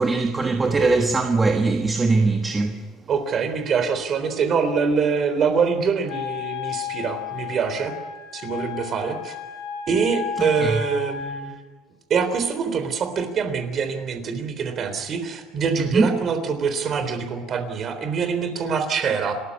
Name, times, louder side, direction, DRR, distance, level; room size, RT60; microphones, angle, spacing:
voice 1, 0.0-2.9 6.7-6.8 10.4-10.8 15.8-16.2, right 3 dB, 15° right, 1.4 m, -21 dB
voice 2, 3.1-7.9 8.3-9.3 9.9-11.6 12.1-19.3, right 6 dB, 35° right, 3.7 m, -24 dB
Wind instrument woodwind instrument, 6.1-11.5, left 8 dB, 90° left, 7.2 m, -33 dB
30.0 x 14.0 x 9.7 m
cardioid pair, 165°, 0 cm